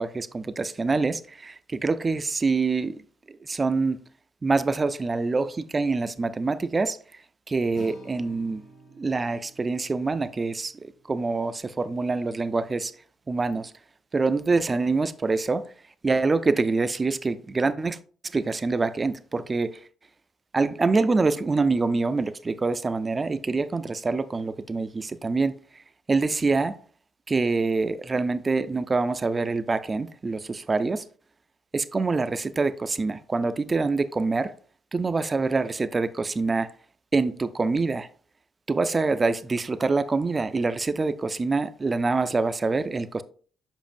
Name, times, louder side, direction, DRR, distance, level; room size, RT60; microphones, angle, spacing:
voice 1, 0.0-3.0 3.3-4.0 4.4-7.0 7.5-8.6 8.9-12.9 13.3-13.7 14.1-15.7 16.0-18.0 18.3-19.8 20.5-25.6 26.1-26.8 27.3-31.0 31.7-34.5 34.9-36.7 37.1-38.1 38.7-43.2, right 3 dB, 30° right, 0.4 m, -25 dB
Acoustic guitar, 7.7-12.0, equal, 75° left, 3.0 m, -51 dB
7.2 x 5.3 x 2.5 m
cardioid pair, 90°, 0 cm